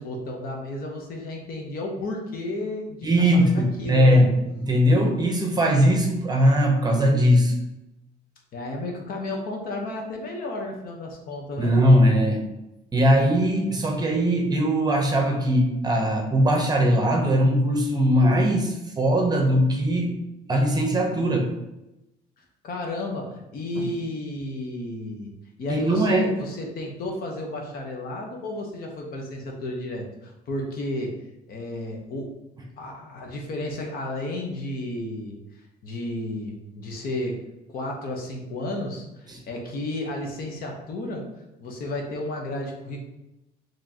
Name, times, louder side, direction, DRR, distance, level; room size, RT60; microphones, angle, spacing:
voice 1, 0.0-4.3 8.5-12.0 22.6-31.2 31.5-32.3 32.8-35.4 35.8-37.4 37.7-41.3 41.6-43.0, left 1 dB, 60° left, 1 dB, 1.0 m, -32 dB
voice 2, 3.0-7.5 11.6-12.5 12.9-20.1 20.5-21.5 23.8-23.9 25.7-26.4 39.3-39.4, equal, 25° right, 1 dB, 0.8 m, -20 dB
4.9 x 3.1 x 2.9 m, 0.93 s
cardioid pair, 110°, 17 cm